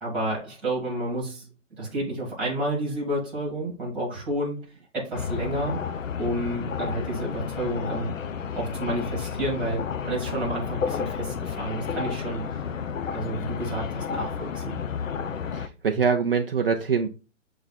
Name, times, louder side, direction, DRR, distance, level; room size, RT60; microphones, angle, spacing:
voice 1, 0.0-1.5 1.8-5.8 6.2-8.2 8.6-12.5 13.1-14.8, right 1 dB, 5° right, -6 dB, 1.7 m, -30 dB
sound 1, 5.1-15.7, left 6 dB, 80° left, 0.8 m, -31 dB
voice 2, 15.5-17.1, right 6 dB, 50° right, 3 dB, 0.5 m, -24 dB
7.0 x 3.4 x 4.0 m, 0.33 s
hypercardioid pair, 180°, 38 cm